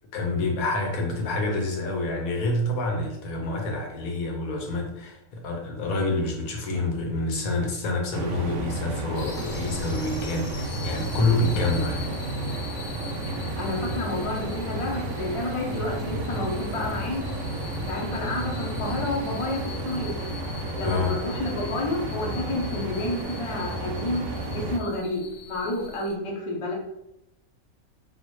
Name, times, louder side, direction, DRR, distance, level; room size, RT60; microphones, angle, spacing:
voice 1, 0.1-12.1 20.8-21.2, left 2 dB, 80° left, 1 dB, 1.2 m, -27 dB
sound 1, 8.1-24.8, right 2 dB, 70° right, 0.8 m, -32 dB
sound 2, 9.1-26.1, left 5 dB, 65° left, 0.8 m, -42 dB
voice 2, 13.6-17.2 17.8-20.1 20.7-24.2 24.5-26.7, left 2 dB, 40° left, -2 dB, 0.4 m, -30 dB
4.0 x 2.2 x 3.0 m, 0.85 s
omnidirectional pair, 1.5 m